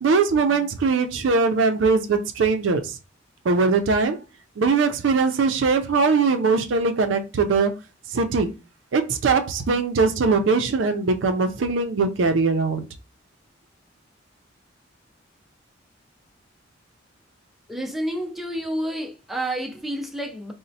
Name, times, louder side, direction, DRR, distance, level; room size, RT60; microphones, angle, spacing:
voice 1, 0.0-3.0 3.4-4.2 4.6-7.7 8.1-8.5 8.9-12.9, right 4 dB, 70° right, 0.4 m, -21 dB
voice 2, 17.7-20.5, right 1 dB, ahead, 0.4 m, -29 dB
4.0 x 2.0 x 2.6 m
head